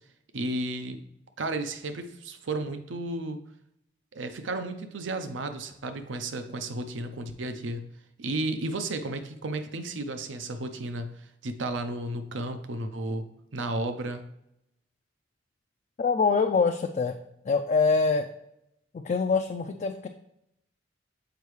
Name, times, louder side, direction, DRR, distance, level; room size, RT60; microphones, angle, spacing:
voice 1, 0.3-1.0 1.4-3.4 4.1-7.9 8.2-13.3 13.5-14.2, right 2 dB, 80° right, 8 dB, 0.6 m, -33 dB
voice 2, 16.0-17.2 17.4-18.3 18.9-20.1, left 4 dB, 40° left, 5 dB, 0.3 m, -24 dB
6.9 x 4.5 x 3.2 m, 0.82 s
head